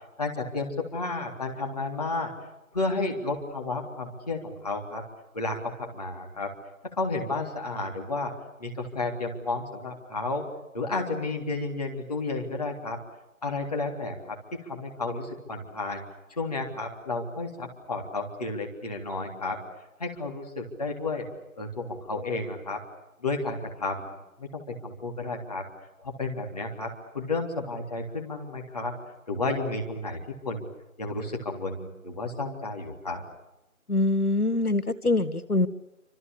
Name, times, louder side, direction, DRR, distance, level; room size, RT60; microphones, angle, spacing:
voice 1, 0.2-2.3 2.7-5.0 5.3-6.5 6.8-8.3 8.6-10.4 10.7-13.0 13.4-16.0 16.4-19.6 20.0-21.3 21.6-22.8 23.2-24.1 24.4-25.6 26.0-28.9 29.3-30.7 31.0-33.2, left 3 dB, 25° left, 1 dB, 3.6 m, -32 dB
voice 2, 33.9-35.7, left 2 dB, 90° left, 14 dB, 1.7 m, -24 dB
28.5 x 26.5 x 6.9 m, 0.93 s
figure-of-eight pair, 165°, 43 cm